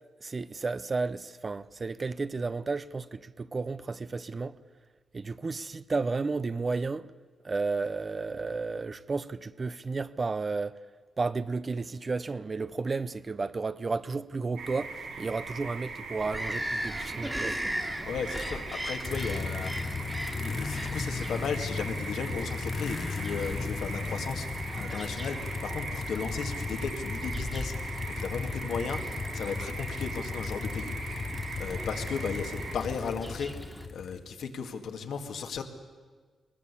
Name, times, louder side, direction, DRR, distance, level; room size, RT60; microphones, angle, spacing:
voice 1, 0.2-4.6 5.1-7.1 7.4-10.8 11.2-17.7, right 4 dB, 30° right, 0.6 m, -32 dB
sound 1, 14.6-32.7, right 4 dB, 90° right, 4.1 m, -40 dB
Bird vocalization bird call bird song, 16.2-33.9, equal, 5° right, 1.8 m, -40 dB
voice 2, 18.1-19.7 20.3-24.5 24.7-27.7 28.1-31.0 31.6-33.5 33.9-35.6, left 5 dB, 80° left, 2.1 m, -35 dB
sound 2, 18.4-34.3, left 5 dB, 40° left, 0.7 m, -37 dB
22.0 x 20.5 x 8.4 m
cardioid pair, 115°, 0 cm